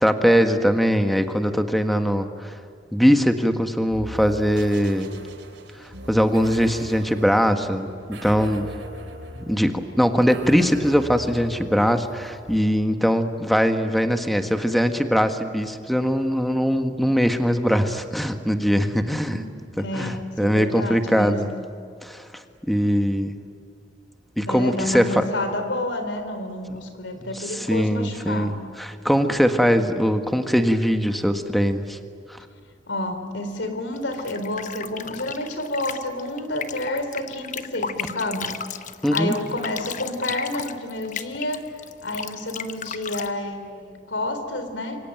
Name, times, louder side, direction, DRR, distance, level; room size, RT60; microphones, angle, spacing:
voice 1, 0.0-2.6 2.9-5.1 6.1-8.7 9.4-19.4 20.0-21.5 22.0-22.3 22.7-23.3 24.4-25.2 27.3-32.0 32.3-32.4 39.0-39.3, equal, ahead, 7 dB, 1.5 m, -21 dB
sound 1, 3.9-12.6, right 1 dB, 85° right, 4.1 m, -40 dB
voice 2, 19.8-21.6 24.4-28.5 32.9-38.9 39.1-41.6 42.0-45.0, left 1 dB, 80° left, 8 dB, 3.8 m, -29 dB
sound 2, 34.0-43.3, left 7 dB, 45° left, 1.1 m, -34 dB
27.5 x 23.5 x 9.2 m, 2.4 s
head